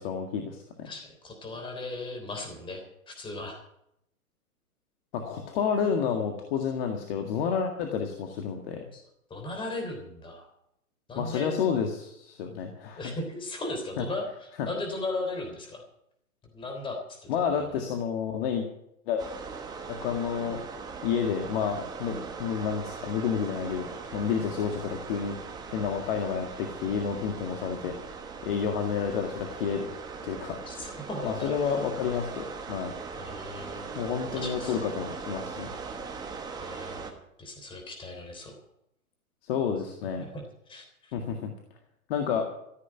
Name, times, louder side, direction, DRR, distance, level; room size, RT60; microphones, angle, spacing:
voice 1, 0.0-0.9 5.1-8.8 11.2-13.1 14.0-14.1 14.6-14.7 17.3-18.7 19.1-19.2 19.9-20.6 21.0-23.9 24.1-25.4 25.7-27.9 28.4-29.9 30.2-30.6 31.2-32.9 33.9-35.7 39.4-40.3 41.1-41.5 42.1-42.5, left 7 dB, 40° left, 4 dB, 1.9 m, -30 dB
voice 2, 0.8-3.6 8.9-9.0 9.3-10.5 11.1-11.6 13.0-15.8 16.5-17.7 30.6-31.8 33.2-33.9 34.3-34.8 36.6-38.5 40.2-41.1, left 2 dB, 10° left, 4 dB, 3.4 m, -37 dB
sound 1, 19.2-37.1, right 5 dB, 10° right, 1.2 m, -40 dB
15.0 x 8.4 x 8.9 m, 0.79 s
hypercardioid pair, 135°, 44 cm